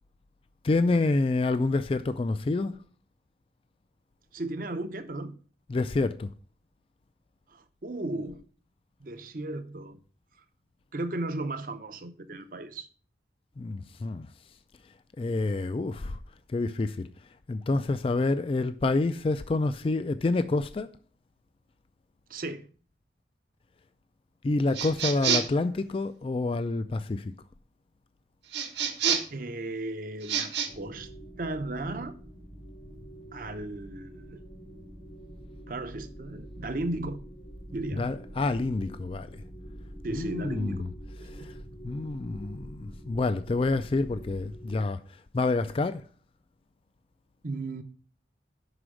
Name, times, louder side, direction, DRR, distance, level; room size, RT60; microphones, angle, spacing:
voice 1, 0.6-2.8 5.7-6.3 13.6-14.3 15.2-16.2 16.5-17.1 17.5-20.9 24.4-27.3 38.0-39.4 40.1-40.9 41.3-41.5 41.8-45.0 45.3-46.0, left 3 dB, 30° left, 0.3 m, -28 dB
voice 2, 4.3-5.4 7.5-8.5 9.0-10.0 10.9-12.9 22.3-22.7 29.3-31.1 31.4-32.1 33.3-34.4 35.7-37.2 37.7-38.1 40.0-40.9 41.3-41.5 47.4-47.8, right 2 dB, 50° right, 0.7 m, -35 dB
sound 1, 24.7-25.6 28.5-29.4 30.2-30.7, right 7 dB, 75° right, 1.1 m, -28 dB
sound 2, 30.7-44.8, equal, 90° left, 2.0 m, -45 dB
6.0 x 4.9 x 6.1 m
head